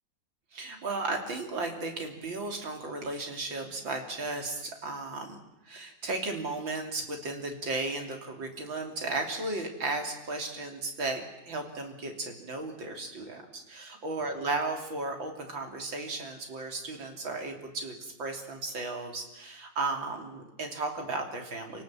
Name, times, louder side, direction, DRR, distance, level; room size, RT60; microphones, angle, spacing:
voice 1, 0.5-5.4 5.7-21.8, right 3 dB, 85° right, 3 dB, 3.9 m, -35 dB
28.0 x 18.5 x 7.6 m, 0.94 s
omnidirectional pair, 2.0 m